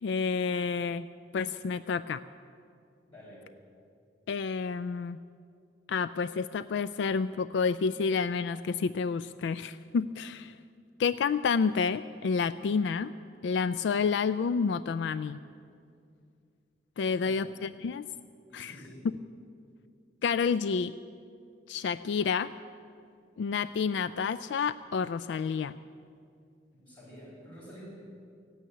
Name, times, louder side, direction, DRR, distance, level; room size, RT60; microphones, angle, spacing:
voice 1, 0.0-1.1 1.3-2.2 4.3-5.2 5.9-10.6 11.0-13.1 13.4-15.4 17.0-18.1 18.5-18.7 20.2-20.9 21.7-22.5 23.4-25.7, left 5 dB, 80° left, 14 dB, 0.3 m, -29 dB
voice 2, 3.1-3.5 17.0-17.5 18.5-19.1 26.8-27.9, equal, 25° left, -10 dB, 4.7 m, -49 dB
16.5 x 9.3 x 9.6 m, 2.4 s
head